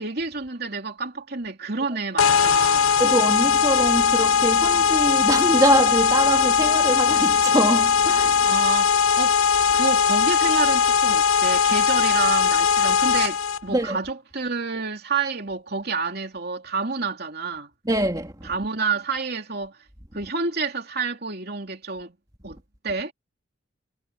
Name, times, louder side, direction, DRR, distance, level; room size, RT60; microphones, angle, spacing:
voice 1, 0.0-3.0 8.4-9.4 9.7-17.7 18.4-19.7 20.1-22.1 22.4-22.6 22.8-23.1, right 4 dB, 50° right, 3.1 m, -29 dB
sound 1, 2.2-13.6, left 6 dB, 85° left, 0.5 m, -19 dB
voice 2, 3.0-8.4 13.7-14.0 17.9-18.5, right 1 dB, 20° right, 2.5 m, -24 dB
head